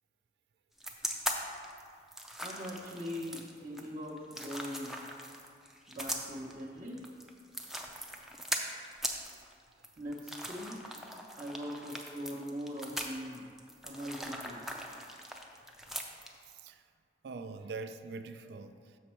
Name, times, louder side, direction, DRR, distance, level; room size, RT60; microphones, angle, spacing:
sound 1, 0.8-16.5, equal, ahead, 0.4 m, -40 dB
voice 1, 2.4-5.0 5.9-7.0 10.0-10.8 11.4-13.5 13.8-14.7, equal, 40° right, -6 dB, 0.8 m, -41 dB
voice 2, 17.2-19.0, right 4 dB, 70° right, 10 dB, 0.4 m, -44 dB
6.4 x 6.2 x 4.3 m, 2.2 s
head